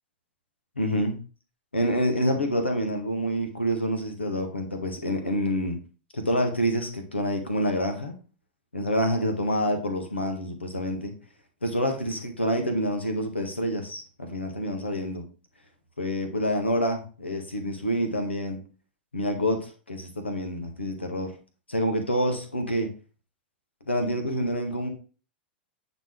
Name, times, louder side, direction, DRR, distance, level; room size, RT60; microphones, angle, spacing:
voice 1, 0.8-1.2 1.7-5.8 6.1-8.1 8.7-11.1 11.6-15.2 16.0-18.6 19.1-21.3 21.7-22.9 23.9-24.9, equal, 80° left, 5 dB, 1.5 m, -27 dB
8.9 x 4.1 x 3.7 m, 0.36 s
figure-of-eight pair, 95°, 6 cm